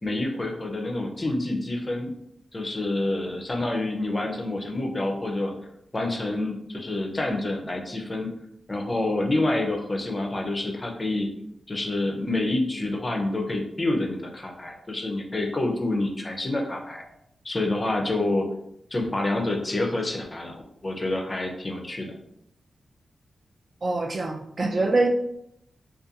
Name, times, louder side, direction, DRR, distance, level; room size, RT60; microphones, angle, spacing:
voice 1, 0.0-2.1 2.5-5.5 5.9-8.3 8.7-11.3 11.7-17.0 17.4-18.5 18.9-20.6 20.8-22.1, left 2 dB, 25° left, 2 dB, 0.4 m, -27 dB
voice 2, 23.8-25.1, right 2 dB, 40° right, 3 dB, 0.3 m, -24 dB
2.4 x 2.2 x 2.7 m, 0.76 s
wide cardioid pair, 120°, 0 cm